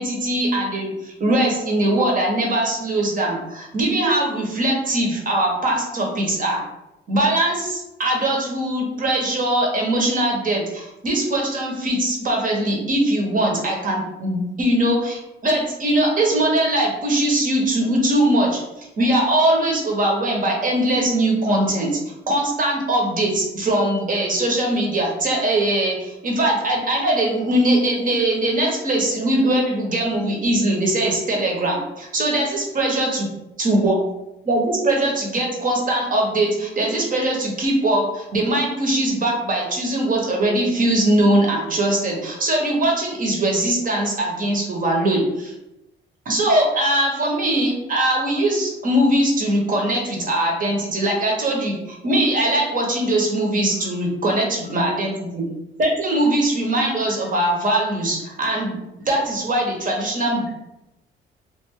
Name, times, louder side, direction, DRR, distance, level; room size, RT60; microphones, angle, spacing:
voice 1, 0.0-6.6 7.1-33.3 33.6-34.0 34.4-45.5 46.2-55.4 55.8-58.8 59.1-60.5, right 1 dB, 45° right, 0 dB, 1.1 m, -21 dB
3.1 x 2.5 x 3.7 m, 0.92 s
cardioid pair, 90°, 20 cm